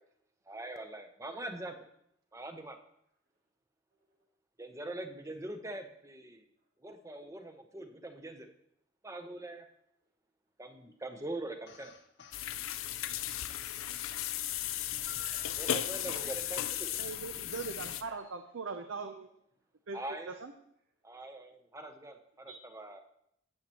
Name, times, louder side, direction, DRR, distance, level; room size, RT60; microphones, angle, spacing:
voice 1, 0.5-1.8 2.3-2.8 4.6-6.4 6.8-8.5 9.0-9.7 10.6-11.9 15.6-17.0 19.9-20.3 21.0-23.0, right 1 dB, 15° right, 6 dB, 0.7 m, -43 dB
voice 2, 3.9-4.3 14.8-16.4 17.9-18.2, right 3 dB, 50° right, 0 dB, 1.8 m, -58 dB
sound 1, 11.7-12.5 13.0-14.6 15.1-16.5 17.5-17.8, left 3 dB, 60° left, 0.9 m, -53 dB
sound 2, 12.3-18.0, left 11 dB, 85° left, 0.5 m, -36 dB
voice 3, 17.0-19.3 19.9-20.0 20.3-20.5 22.5-22.6, right 4 dB, 70° right, 7 dB, 0.6 m, -40 dB
13.0 x 8.7 x 3.0 m, 0.75 s
head